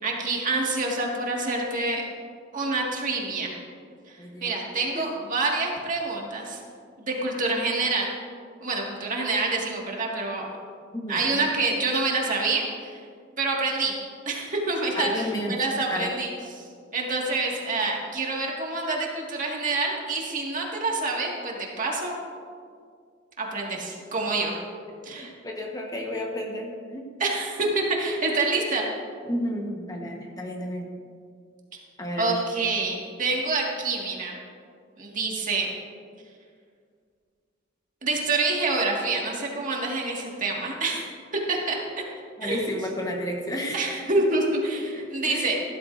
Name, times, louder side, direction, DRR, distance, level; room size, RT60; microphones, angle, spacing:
voice 1, 0.0-2.0 2.5-3.5 4.1-6.6 7.0-8.1 8.6-10.5 11.1-13.0 13.4-13.9 14.3-16.3 16.6-16.7 16.9-22.2 23.4-24.5 25.0-25.3 27.2-28.8 32.2-34.4 35.0-35.7 38.0-41.0 41.5-41.8 42.4-42.7 43.7-45.6, right 3 dB, 45° right, -1 dB, 1.9 m, -27 dB
voice 2, 4.2-4.6 4.9-5.1 10.9-11.5 15.0-15.6 15.9-16.1 24.9-27.1 29.2-30.9 32.0-32.4 42.4-43.9 44.2-44.3 44.9-45.5, equal, 20° left, 0 dB, 1.2 m, -32 dB
15.0 x 13.0 x 2.6 m, 2.1 s
head